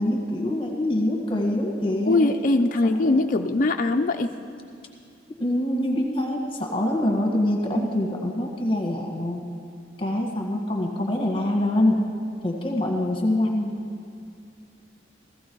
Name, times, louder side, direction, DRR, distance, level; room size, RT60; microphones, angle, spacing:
voice 1, 0.0-2.3 2.8-3.2 5.4-9.5 10.0-12.0 12.4-13.7, left 1 dB, 30° left, 1 dB, 1.7 m, -25 dB
voice 2, 2.1-4.3, left 2 dB, 45° left, 4 dB, 0.5 m, -21 dB
15.5 x 15.0 x 4.6 m, 2.3 s
head